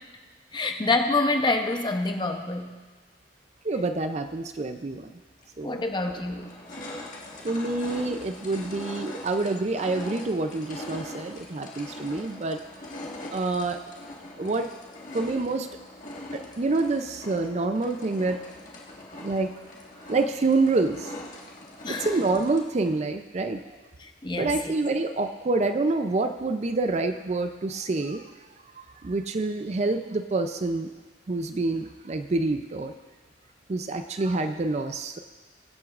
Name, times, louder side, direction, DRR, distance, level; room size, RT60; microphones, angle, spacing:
voice 1, 0.5-2.7 5.6-6.5 21.8-22.1 24.0-24.7, left 2 dB, 25° left, 5 dB, 0.7 m, -27 dB
voice 2, 3.6-5.1 5.6-5.8 7.4-12.6 13.3-13.8 14.4-14.7 15.1-15.7 16.3-18.4 19.2-19.5 20.1-21.1 21.9-23.6 24.3-28.2 28.8-30.9 31.3-32.9 33.7-35.2, right 3 dB, 35° right, 8 dB, 0.4 m, -27 dB
sound 1, 5.4-5.5 6.1-22.9, left 1 dB, 45° left, 1.6 m, -42 dB
22.5 x 7.8 x 2.5 m, 1.3 s
head